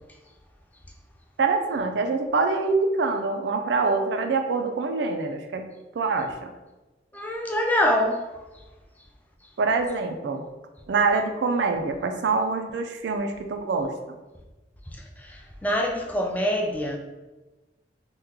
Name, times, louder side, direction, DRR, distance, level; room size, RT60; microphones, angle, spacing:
voice 1, 1.4-5.7 6.0-6.5 9.6-10.4 10.9-13.9, right 4 dB, 80° right, 6 dB, 0.4 m, -25 dB
voice 2, 7.1-8.3 15.3-17.0, left 1 dB, 10° left, 1 dB, 0.3 m, -25 dB
3.0 x 2.2 x 3.6 m, 1.1 s
head